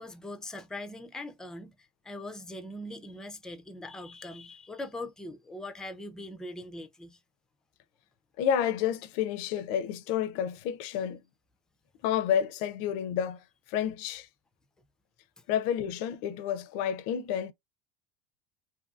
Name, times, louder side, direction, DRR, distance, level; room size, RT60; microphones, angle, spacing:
voice 1, 0.0-1.7 2.0-7.2, left 1 dB, 5° left, 0.4 m, -41 dB
voice 2, 8.4-11.2 12.0-14.3 15.5-17.5, left 9 dB, 65° left, 0.4 m, -30 dB
2.7 x 2.5 x 2.3 m
supercardioid pair, 125°, 14 cm